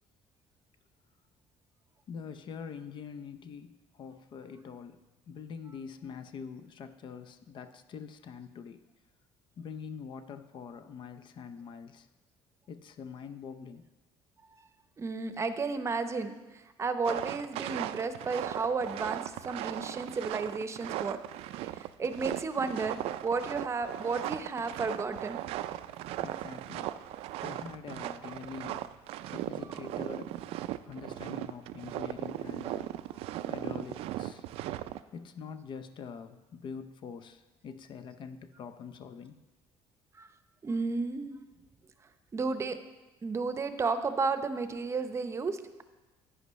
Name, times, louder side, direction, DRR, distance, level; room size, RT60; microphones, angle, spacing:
voice 1, 2.1-5.0 5.3-8.8 9.6-12.1 12.7-13.8 26.2-26.9 27.4-30.4 30.8-32.9 33.5-34.5 35.1-39.4, left 6 dB, 50° left, 9 dB, 0.5 m, -44 dB
voice 2, 15.0-16.3 16.8-21.2 21.8-25.4 28.2-28.3 29.6-29.9 40.2-40.3 40.6-41.4 42.3-42.8 43.2-45.8, right 4 dB, 30° right, 10 dB, 0.7 m, -33 dB
sound 1, 17.0-35.0, right 13 dB, 75° right, 0.4 m, -38 dB
11.0 x 9.6 x 3.1 m, 1.2 s
cardioid pair, 110°, 10 cm